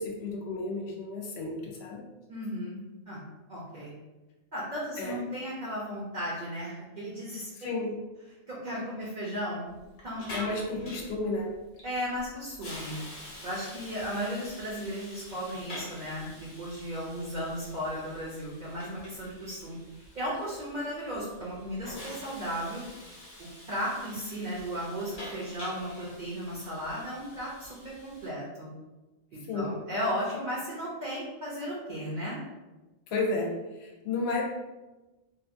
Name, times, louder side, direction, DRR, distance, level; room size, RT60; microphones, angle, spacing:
voice 1, 0.0-2.0 5.0-5.2 7.6-8.0 10.3-11.5 29.5-29.7 33.1-34.4, left 2 dB, 85° left, 0 dB, 0.9 m, -32 dB
voice 2, 2.3-3.2 3.5-3.9 4.5-7.5 8.5-9.7 10.0-10.9 11.8-13.0 13.4-22.8 23.7-28.7 29.5-32.4, equal, 50° right, -6 dB, 0.7 m, -35 dB
Hiss, 9.7-28.3, left 1 dB, 55° left, 0.8 m, -47 dB
2.7 x 2.4 x 2.5 m, 1.1 s
omnidirectional pair, 1.1 m